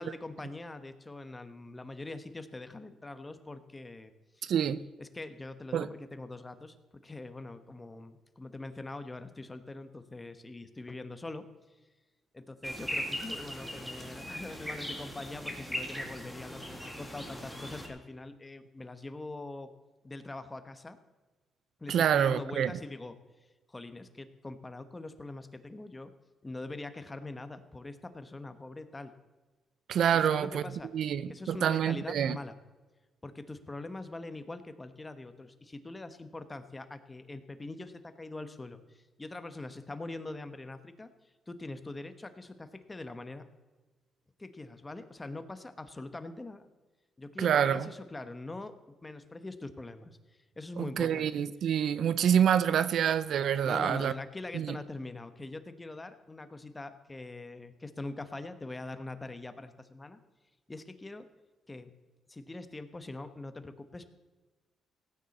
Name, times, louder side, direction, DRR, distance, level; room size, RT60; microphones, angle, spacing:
voice 1, 0.0-4.5 5.0-11.4 12.3-19.7 20.0-21.0 21.8-23.2 23.7-26.1 26.4-29.1 30.1-30.9 31.3-32.6 33.2-41.1 41.5-43.4 44.4-46.6 47.2-48.7 49.0-51.4 53.6-60.2 60.7-61.3 61.7-61.9 62.3-64.1, left 2 dB, 20° left, 1.1 m, -43 dB
voice 2, 4.4-4.8 5.7-5.9 21.9-22.7 29.9-30.6 30.9-32.4 47.4-47.9 51.0-54.1 54.5-54.8, right 9 dB, 65° right, 0.5 m, -27 dB
sound 1, 12.6-17.9, equal, ahead, 2.2 m, -39 dB
16.5 x 9.2 x 4.2 m
cardioid pair, 90°, 0 cm